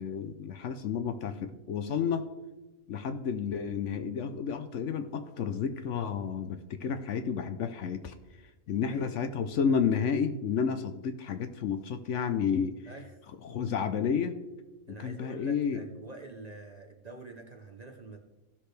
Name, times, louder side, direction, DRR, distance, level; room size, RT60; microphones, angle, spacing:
voice 1, 0.0-2.3 2.9-8.1 8.7-12.8 13.4-14.4 14.9-15.8, left 6 dB, 65° left, 9 dB, 0.9 m, -31 dB
voice 2, 8.9-9.5 12.9-13.2 14.9-18.2, right 2 dB, 35° right, 3 dB, 0.7 m, -47 dB
16.5 x 6.1 x 3.3 m, 1.1 s
omnidirectional pair, 1.5 m